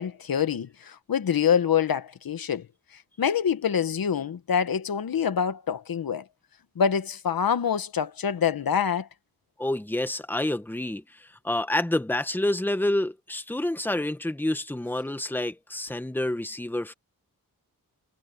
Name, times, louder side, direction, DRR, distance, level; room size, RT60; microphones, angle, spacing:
voice 1, 0.0-2.7 2.9-6.3 6.7-9.1, left 7 dB, 75° left, 1.3 m, -26 dB
voice 2, 9.6-16.9, left 1 dB, 5° left, 1.2 m, -28 dB
wide cardioid pair, 110°, 35 cm